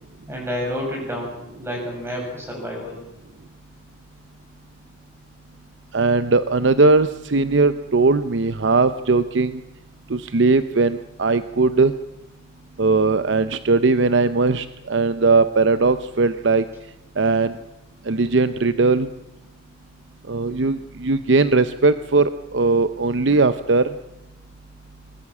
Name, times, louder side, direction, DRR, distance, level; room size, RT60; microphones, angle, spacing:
voice 1, 0.3-3.0, equal, 15° right, 0 dB, 7.6 m, -29 dB
voice 2, 5.9-9.6 10.1-11.9 12.8-16.6 17.2-17.6 18.1-19.1 20.3-23.9, right 3 dB, 65° right, 12 dB, 0.7 m, -19 dB
22.0 x 20.0 x 7.3 m, 0.94 s
head